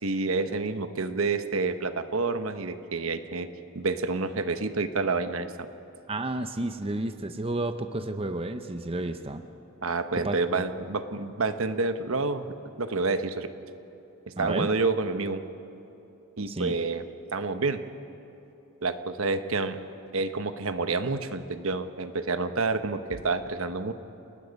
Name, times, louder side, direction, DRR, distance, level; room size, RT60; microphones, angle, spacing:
voice 1, 0.0-3.5 3.7-5.5 9.8-12.4 12.8-13.5 14.4-15.4 16.4-17.0 17.3-17.8 18.8-19.8 20.1-23.9, right 3 dB, 75° right, 9 dB, 1.1 m, -28 dB
voice 2, 6.1-9.4 10.2-10.4 14.4-14.7 16.5-16.8, right 2 dB, 25° right, 8 dB, 0.8 m, -31 dB
29.5 x 19.5 x 5.3 m, 2.9 s
head